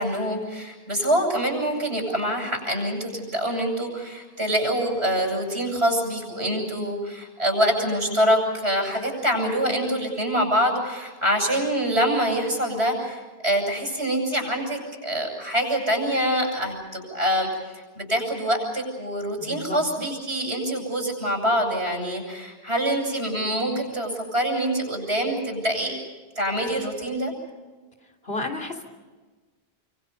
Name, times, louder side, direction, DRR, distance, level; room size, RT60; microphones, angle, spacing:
voice 1, 0.0-25.9 26.3-27.3, equal, 85° right, 3 dB, 7.9 m, -25 dB
voice 2, 19.3-19.8 28.2-28.8, left 2 dB, 70° left, 2 dB, 3.6 m, -32 dB
29.5 x 25.5 x 5.5 m, 1.3 s
omnidirectional pair, 1.1 m